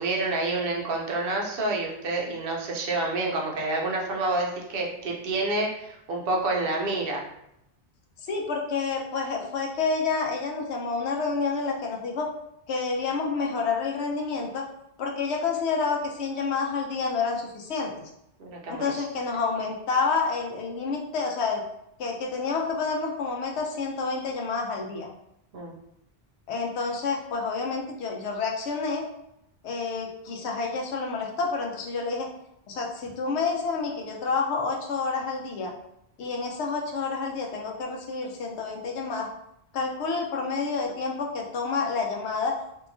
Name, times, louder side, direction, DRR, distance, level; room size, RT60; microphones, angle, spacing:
voice 1, 0.0-7.3 18.4-18.8 25.5-25.7, right 2 dB, 65° right, -1 dB, 0.7 m, -28 dB
voice 2, 8.2-12.3 12.7-14.7 15.0-17.9 18.7-21.6 22.0-25.1 26.5-29.1 29.6-32.3 32.7-35.7 36.2-39.3 39.7-42.6, left 4 dB, 85° left, 1 dB, 0.8 m, -29 dB
2.7 x 2.3 x 2.4 m, 0.81 s
omnidirectional pair, 1.1 m